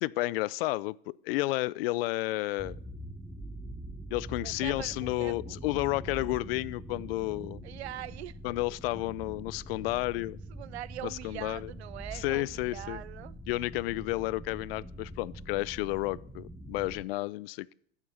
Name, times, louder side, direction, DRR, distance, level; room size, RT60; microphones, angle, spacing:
voice 1, 0.0-2.8 4.1-7.6 8.4-10.4 11.0-11.7 12.1-13.0 13.5-17.7, left 19 dB, 65° left, 0.5 m, -31 dB
sound 1, 2.6-17.0, right 1 dB, ahead, 0.9 m, -44 dB
voice 2, 4.4-5.6 7.6-8.4 10.5-13.4, right 13 dB, 90° right, 0.5 m, -42 dB
8.7 x 7.4 x 6.7 m
hypercardioid pair, 110°, 32 cm